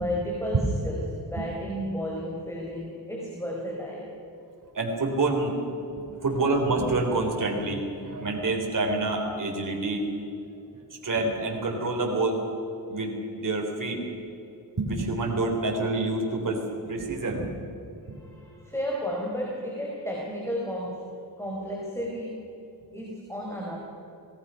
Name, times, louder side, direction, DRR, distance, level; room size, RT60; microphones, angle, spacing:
voice 1, 0.0-4.2 6.2-6.3 18.0-22.5 22.9-23.8, equal, 5° left, -2 dB, 4.6 m, -33 dB
voice 2, 4.7-5.6 6.0-10.1 11.0-12.4 12.9-14.0 14.8-17.6 18.1-18.2, right 2 dB, 50° right, 0 dB, 4.0 m, -27 dB
26.0 x 19.5 x 5.8 m, 2.9 s
cardioid pair, 70°, 41 cm